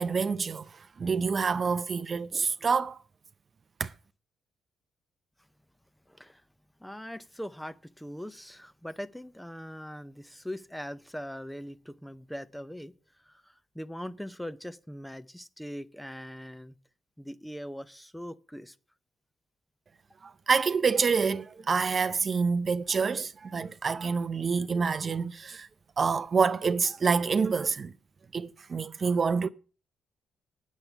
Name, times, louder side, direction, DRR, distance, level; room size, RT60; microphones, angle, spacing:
voice 1, 0.0-3.0 3.8-3.9 20.2-25.7 26.0-27.9 28.3-29.5, right 5 dB, 40° right, 0.5 m, -27 dB
voice 2, 6.1-6.4 6.8-16.7 17.2-18.8, equal, 5° left, 0.7 m, -41 dB
9.0 x 7.3 x 8.0 m
cardioid pair, 90°, 0 cm